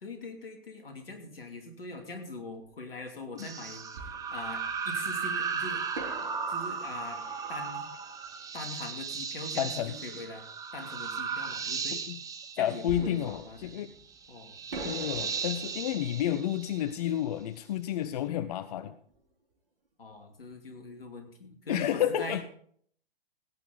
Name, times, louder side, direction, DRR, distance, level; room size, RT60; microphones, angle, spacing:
voice 1, 0.0-5.8 6.5-7.2 7.5-7.9 8.5-10.4 10.7-12.0 12.5-13.9 14.3-14.6 20.0-22.4, left 2 dB, 70° left, 4 dB, 2.7 m, -42 dB
Fireworks, 2.6-2.7 3.9-5.1 5.9-9.4 12.9-14.3 14.7-19.3 19.5-19.6 20.1-20.3, right 2 dB, 65° right, 3.1 m, -46 dB
sound 1, 3.4-17.2, right 6 dB, 10° right, 0.8 m, -36 dB
voice 2, 9.6-9.9 11.9-12.2 12.6-13.9 14.8-19.0 21.7-22.5, left 11 dB, 40° left, 13 dB, 0.5 m, -31 dB
16.5 x 9.1 x 3.9 m, 0.62 s
figure-of-eight pair, 110°, 30 cm